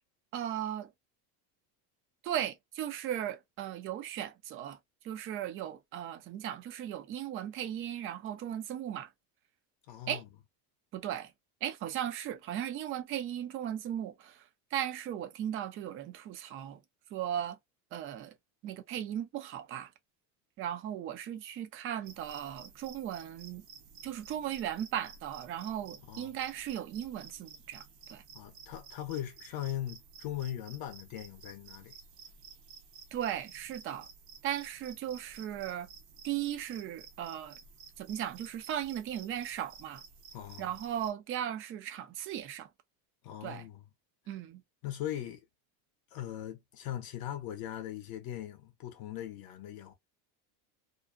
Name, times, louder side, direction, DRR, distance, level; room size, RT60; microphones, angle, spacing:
voice 1, 0.3-0.9 2.2-4.8 5.0-9.1 10.1-10.2 10.9-11.3 11.6-14.4 14.7-16.8 17.1-17.6 17.9-18.3 18.6-19.9 20.6-23.6 24.0-27.8 28.1-28.2 33.1-34.1 34.4-35.9 36.2-37.6 38.0-40.0 40.6-42.7 43.4-43.6 44.3-44.6, right 10 dB, 30° right, 0.4 m, -37 dB
voice 2, 9.9-10.3 26.0-26.3 28.3-32.0 40.3-40.8 43.2-43.8 44.8-45.4 46.1-49.9, left 12 dB, 50° left, 0.7 m, -40 dB
sound 1, 22.0-41.1, right 6 dB, 75° right, 1.1 m, -53 dB
2.6 x 2.1 x 2.3 m
supercardioid pair, 120°, 49 cm